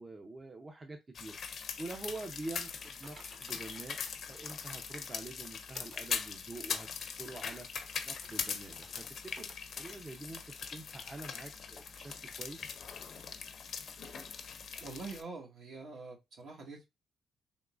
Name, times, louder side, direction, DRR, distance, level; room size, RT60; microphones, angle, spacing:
voice 1, 0.0-4.0 4.3-12.7, right 2 dB, 25° right, 0.5 m, -46 dB
sound 1, 1.1-15.2, left 6 dB, 55° left, 0.5 m, -41 dB
Typing, 2.8-5.2 5.7-6.1 6.6-6.7 7.2-9.0 9.3-9.6 9.9-10.0 10.6-10.7, right 2 dB, 45° right, 1.1 m, -58 dB
voice 2, 14.8-16.9, right 3 dB, 65° right, 1.3 m, -45 dB
3.7 x 3.0 x 2.4 m
cardioid pair, 90°, 0 cm